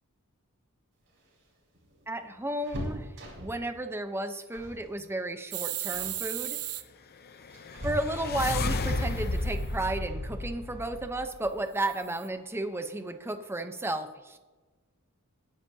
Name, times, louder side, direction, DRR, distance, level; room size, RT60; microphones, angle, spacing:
sound 1, 1.0-3.7 4.5-4.9 5.1-5.4 5.8-6.2 7.0-8.5 10.2-10.3 10.7-10.8 12.0-12.4 12.7-12.8 13.1-13.3, equal, 60° right, 4.9 m, -41 dB
voice 1, 2.1-3.1 3.4-6.6 7.8-14.4, right 2 dB, 10° right, 8 dB, 0.8 m, -33 dB
sound 2, 5.5-6.8 8.6-9.6 11.8-12.3, right 14 dB, 80° right, 0.8 m, -36 dB
sound 3, 7.3-11.5, left 2 dB, 45° left, 0.7 m, -32 dB
20.5 x 10.0 x 2.8 m, 1.3 s
head